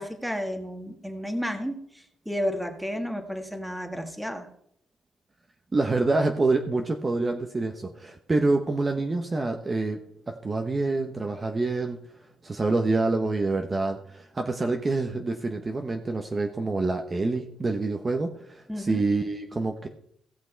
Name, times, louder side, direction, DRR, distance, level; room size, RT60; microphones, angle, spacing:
voice 1, 0.0-4.5 18.7-19.0, equal, ahead, 5 dB, 1.7 m, -32 dB
voice 2, 5.7-10.0 10.3-12.0 12.4-19.9, right 3 dB, 25° right, 4 dB, 1.0 m, -26 dB
16.5 x 6.2 x 4.6 m, 0.70 s
cardioid pair, 90°, 0 cm